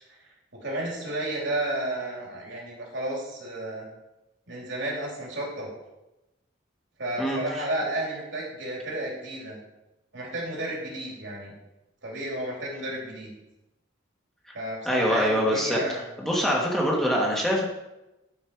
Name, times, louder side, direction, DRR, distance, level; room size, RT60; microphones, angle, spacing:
voice 1, 0.5-3.9 4.5-5.7 7.0-9.6 10.1-11.5 12.0-13.3 14.5-16.0, right 1 dB, 65° right, -3 dB, 3.3 m, -32 dB
voice 2, 14.8-15.8 16.2-17.6, equal, ahead, -3 dB, 1.6 m, -24 dB
11.5 x 5.6 x 4.7 m, 0.97 s
head